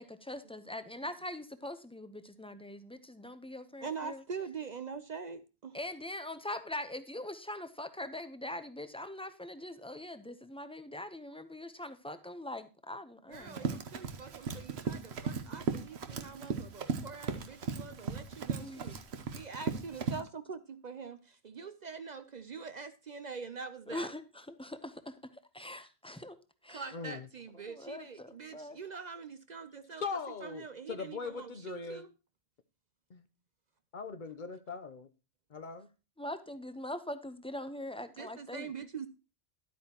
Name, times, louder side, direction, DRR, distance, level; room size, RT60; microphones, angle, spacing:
voice 1, 0.0-4.2 5.7-13.8 18.6-19.0 23.9-25.1 25.5-26.4 26.6-26.9 27.5-28.8 36.2-38.7, left 1 dB, 5° left, 0.6 m, -42 dB
voice 2, 3.8-5.8 13.3-19.0 19.3-24.1 25.6-25.7 26.7-30.0 30.4-32.1 38.2-39.1, right 5 dB, 50° right, 0.7 m, -44 dB
Run, 13.3-20.2, right 5 dB, 80° right, 1.2 m, -37 dB
voice 3, 26.9-27.3 30.0-32.0 33.1-33.3 33.9-35.1 35.5-35.9, left 4 dB, 50° left, 0.8 m, -40 dB
12.0 x 8.5 x 2.9 m
omnidirectional pair, 1.1 m